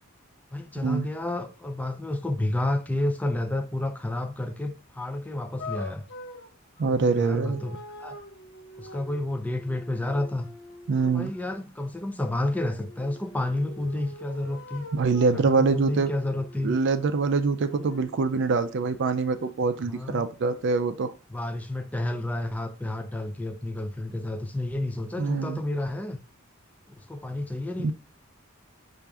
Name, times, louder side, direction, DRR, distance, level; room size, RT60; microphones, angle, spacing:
voice 1, 0.5-6.0 6.8-8.2 8.8-10.5 11.0-14.9 15.3-16.8 19.9-20.2 21.3-26.2 27.0-27.9, left 1 dB, 10° left, 0.4 m, -30 dB
sound 1, 5.6-11.6 12.8-17.2 17.7-19.5, left 1 dB, 65° left, 0.7 m, -44 dB
voice 2, 6.8-7.6 10.9-11.3 14.9-16.1 16.6-21.1 25.2-25.6 27.8-27.9, right 4 dB, 60° right, 0.4 m, -24 dB
5.9 x 2.5 x 3.4 m
head